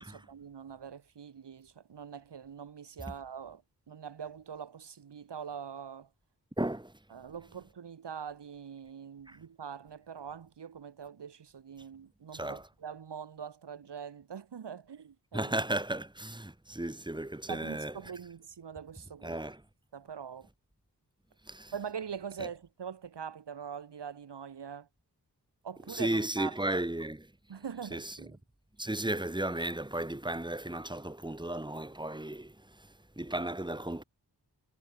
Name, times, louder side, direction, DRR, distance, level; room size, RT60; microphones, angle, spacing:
voice 1, 0.0-3.6 3.9-6.1 7.1-15.5 17.5-19.3 19.9-20.5 21.7-24.9 25.6-26.6 27.5-28.3, right 7 dB, 90° right, 3.3 m, -43 dB
voice 2, 6.6-6.9 9.3-9.4 12.3-12.7 15.3-18.0 19.2-19.6 21.4-21.7 22.4-22.5 25.9-27.3 27.9-28.3 28.8-34.0, right 1 dB, 10° right, 3.2 m, -35 dB
cardioid pair, 60°, 40 cm